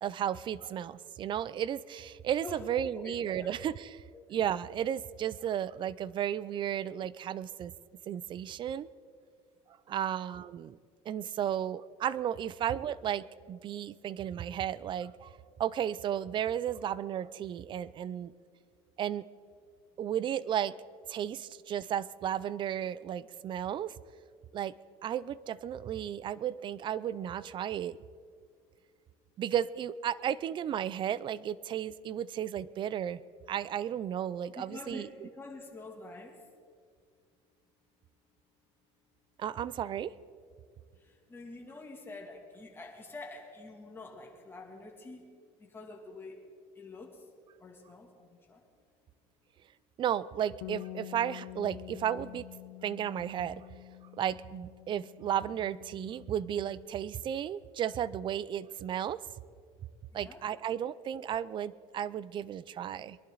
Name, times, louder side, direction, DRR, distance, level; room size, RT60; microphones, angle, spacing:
voice 1, 0.0-4.0 4.3-7.7 8.1-8.9 9.9-10.8 11.1-15.3 15.6-18.3 19.0-19.2 20.0-20.7 21.1-24.0 24.5-24.7 25.0-28.0 29.4-33.2 33.5-35.3 39.4-40.1 50.0-52.4 52.8-53.6 54.2-59.2 60.1-63.2, right 10 dB, 35° right, 19 dB, 0.5 m, -34 dB
voice 2, 3.0-3.5 4.1-4.2 34.5-36.4 40.9-45.2 45.6-46.4 46.7-47.3 47.6-48.6 60.1-60.4, left 3 dB, 15° left, 0 dB, 2.6 m, -47 dB
Bass guitar, 50.6-56.9, left 19 dB, 80° left, 0.7 m, -48 dB
23.0 x 11.5 x 4.0 m, 2.1 s
cardioid pair, 130°, 14 cm